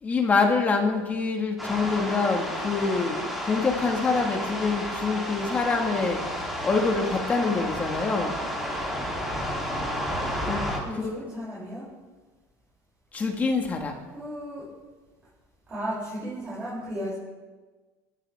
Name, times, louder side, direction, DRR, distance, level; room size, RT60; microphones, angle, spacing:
voice 1, 0.0-6.2 6.6-8.4 10.5-10.6 10.9-11.1 13.1-14.0, left 4 dB, 20° left, 2 dB, 1.9 m, -25 dB
sound 1, 1.6-10.8, equal, ahead, 3.4 m, -31 dB
voice 2, 10.8-11.9 14.1-14.7 15.7-17.1, equal, 20° right, -8 dB, 7.3 m, -34 dB
28.5 x 13.0 x 3.7 m, 1.3 s
cardioid pair, 155°, 7 cm